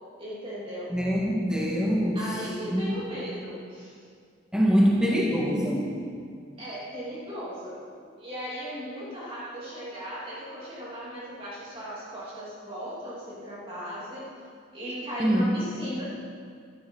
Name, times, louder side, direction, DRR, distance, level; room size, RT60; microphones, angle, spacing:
voice 1, 0.2-0.9 2.1-4.0 6.6-7.7 8.2-14.3 14.7-16.0, equal, 30° right, -8 dB, 3.1 m, -37 dB
voice 2, 0.9-2.2 2.7-2.8 4.5-5.9 15.2-15.5, equal, 5° right, -4 dB, 1.7 m, -23 dB
13.0 x 12.5 x 5.6 m, 2.2 s
head